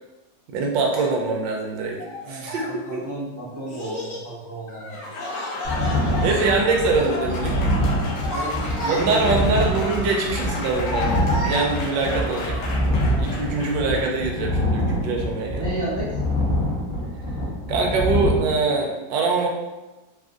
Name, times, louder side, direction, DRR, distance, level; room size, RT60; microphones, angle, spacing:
voice 1, 0.5-2.0 2.3-3.0 5.7-7.6 8.9-12.6 13.2-15.7 17.7-19.5, right 3 dB, 80° right, 0 dB, 1.2 m, -24 dB
Child speech kid speaking, 0.9-1.1 2.0-2.7 3.7-4.3 4.7-5.9 6.2-6.5 6.9-7.5 8.0-9.4 10.4-12.1, equal, 60° left, 1.6 m, -32 dB
voice 2, 2.2-5.0 8.3-9.4 15.6-16.1, right 1 dB, 15° right, -10 dB, 0.6 m, -32 dB
Applause, 4.9-14.3, left 2 dB, 75° left, 1.2 m, -33 dB
sound 1, 5.6-18.4, equal, 35° left, 1.1 m, -25 dB
3.6 x 2.5 x 2.4 m, 1.1 s
omnidirectional pair, 2.0 m